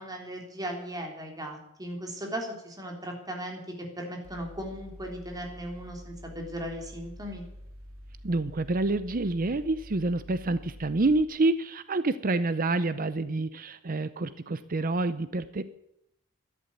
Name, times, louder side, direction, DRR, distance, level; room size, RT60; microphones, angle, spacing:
voice 1, 0.0-7.4, equal, 15° right, 1 dB, 3.5 m, -37 dB
Mechanical fan, 4.2-11.2, equal, 70° right, 2.7 m, -47 dB
voice 2, 8.2-15.6, right 2 dB, 40° right, 13 dB, 0.7 m, -28 dB
12.5 x 11.0 x 9.5 m, 0.80 s
head